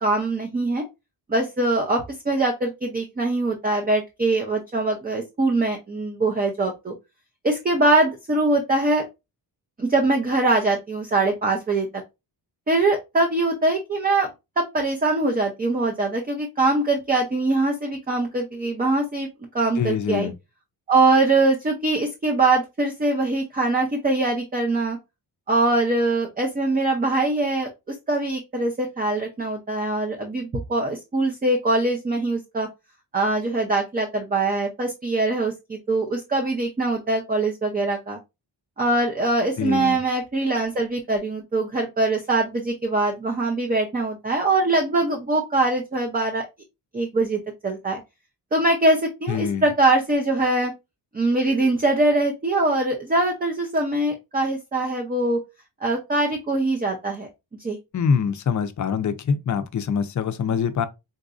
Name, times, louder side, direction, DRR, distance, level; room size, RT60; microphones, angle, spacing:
voice 1, 0.0-0.8 1.3-6.9 7.4-9.0 9.8-11.9 12.7-14.3 14.6-19.3 19.5-20.3 20.9-25.0 25.5-32.7 33.1-38.2 38.8-46.5 46.9-48.0 48.5-50.7 51.1-55.4 55.8-57.3 57.6-57.8, right 2 dB, 20° right, 0.5 m, -22 dB
voice 2, 19.8-20.3 39.6-40.0 49.3-49.7 57.9-60.9, left 6 dB, 45° left, 0.5 m, -24 dB
4.0 x 2.5 x 2.4 m
cardioid pair, 110°, 42 cm